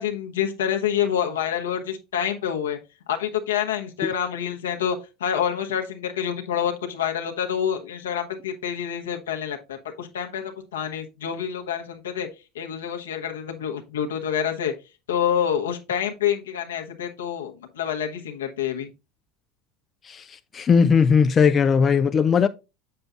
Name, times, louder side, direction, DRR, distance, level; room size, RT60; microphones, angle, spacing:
voice 1, 0.0-2.8 3.1-12.3 12.5-14.7 15.1-18.9, left 9 dB, 80° left, 1.2 m, -27 dB
voice 2, 20.5-22.5, left 6 dB, 30° left, 0.4 m, -18 dB
7.8 x 7.0 x 2.5 m
hypercardioid pair, 85°, 0 cm